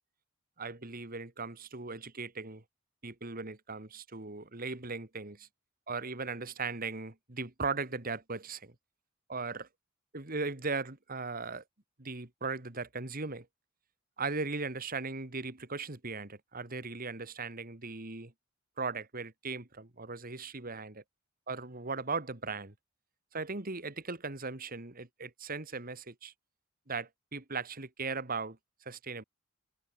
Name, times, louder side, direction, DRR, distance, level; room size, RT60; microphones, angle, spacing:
voice 1, 0.6-2.6 3.0-5.5 5.9-8.7 9.3-9.7 10.1-11.6 12.0-13.5 14.2-18.3 18.8-21.0 21.5-22.7 23.3-26.3 26.9-28.6 28.9-29.2, right 4 dB, 45° right, 2.3 m, -38 dB
head